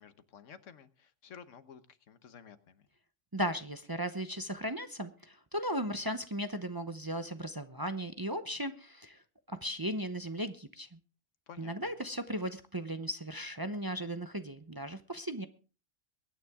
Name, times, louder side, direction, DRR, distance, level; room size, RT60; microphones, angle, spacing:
voice 1, 0.0-2.9 11.5-11.9, left 7 dB, 85° left, 12 dB, 1.4 m, -53 dB
voice 2, 3.3-9.2 9.5-11.0 11.6-15.5, equal, 20° right, 9 dB, 0.7 m, -36 dB
23.0 x 9.6 x 3.6 m, 0.36 s
omnidirectional pair, 1.3 m